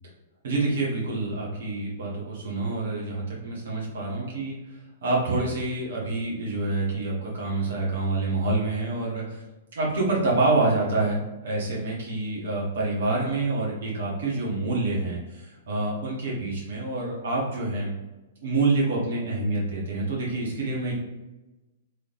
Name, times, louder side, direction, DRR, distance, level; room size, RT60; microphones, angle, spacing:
voice 1, 0.4-4.6 5.0-9.4 9.7-17.9 18.4-20.9, right 2 dB, 60° right, -4 dB, 1.3 m, -27 dB
3.5 x 3.3 x 2.5 m, 1.1 s
figure-of-eight pair, 110°, 0 cm